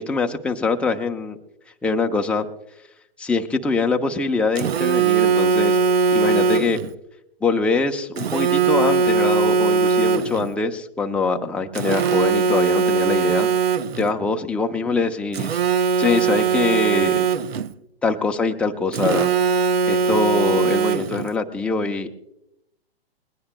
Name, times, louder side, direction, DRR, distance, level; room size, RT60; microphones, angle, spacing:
voice 1, 0.0-1.4 1.8-2.5 3.2-5.8 6.1-6.8 7.4-13.5 14.0-17.3 18.0-19.3 19.9-22.1, left 3 dB, 5° left, 3 dB, 0.6 m, -23 dB
Telephone, 4.6-6.9 8.2-10.5 11.8-14.1 15.3-17.7 18.9-21.3, right 5 dB, 75° right, 0.7 m, -20 dB
21.0 x 19.0 x 2.2 m, 0.84 s
hypercardioid pair, 125°, 31 cm